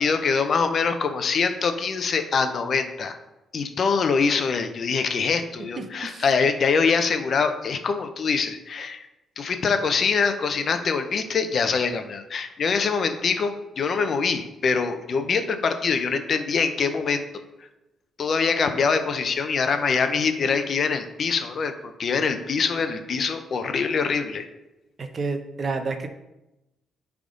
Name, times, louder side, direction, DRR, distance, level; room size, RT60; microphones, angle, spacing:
voice 1, 0.0-3.2 3.5-9.1 9.4-17.2 18.2-24.5, left 5 dB, 50° left, 8 dB, 0.7 m, -24 dB
voice 2, 5.8-6.2 25.0-26.1, right 4 dB, 40° right, 6 dB, 0.7 m, -30 dB
9.9 x 3.6 x 3.8 m, 0.96 s
cardioid pair, 90°, 0 cm